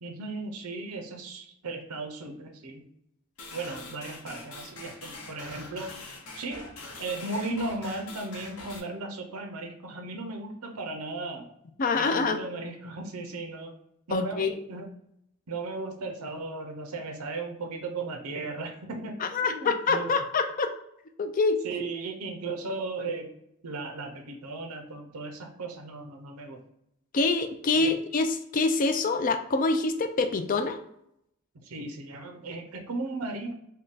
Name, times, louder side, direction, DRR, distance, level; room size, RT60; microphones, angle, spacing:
voice 1, 0.0-2.8 3.5-5.9 6.3-6.7 7.0-11.5 11.9-13.8 14.1-14.9 15.5-20.1 21.6-23.3 23.6-26.6 27.7-27.9 31.6-33.5, right 3 dB, 80° right, 5 dB, 0.6 m, -36 dB
sound 1, 3.4-8.8, left 2 dB, 75° left, 0.9 m, -43 dB
voice 2, 11.8-12.4 14.1-14.5 19.2-20.7 21.2-21.6 27.1-30.8, left 3 dB, 35° left, 8 dB, 0.3 m, -25 dB
3.6 x 2.2 x 3.9 m, 0.76 s
head